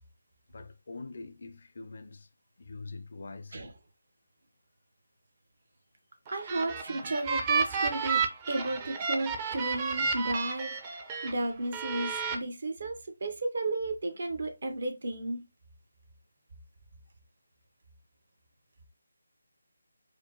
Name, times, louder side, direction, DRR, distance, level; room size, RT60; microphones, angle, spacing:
voice 1, 0.5-2.3 2.6-3.7, left 3 dB, 55° left, 0.5 m, -44 dB
sound 1, 6.3-11.3 11.7-12.4, right 5 dB, 25° right, 0.6 m, -31 dB
voice 2, 6.3-8.2 8.5-10.7 11.2-12.9 13.2-15.4, right 2 dB, 60° right, 1.0 m, -33 dB
4.8 x 2.1 x 3.0 m
figure-of-eight pair, 155°, 0 cm